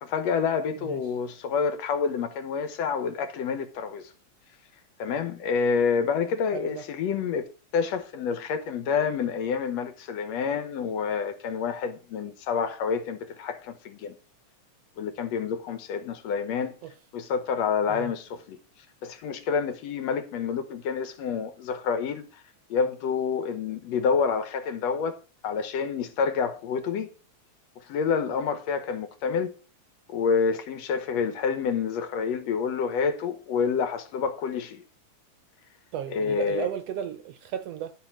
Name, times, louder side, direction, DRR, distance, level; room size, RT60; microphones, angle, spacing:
voice 1, 0.0-4.0 5.0-7.4 7.7-14.2 15.0-16.7 17.1-18.6 19.0-22.2 22.7-25.2 25.4-27.1 27.9-29.5 30.1-34.8 36.1-36.7, left 6 dB, 70° left, 2.1 m, -28 dB
voice 2, 6.5-6.8 16.8-16.9 17.9-18.1 35.9-37.9, right 9 dB, 75° right, 1.6 m, -34 dB
11.5 x 5.8 x 5.9 m
omnidirectional pair, 3.3 m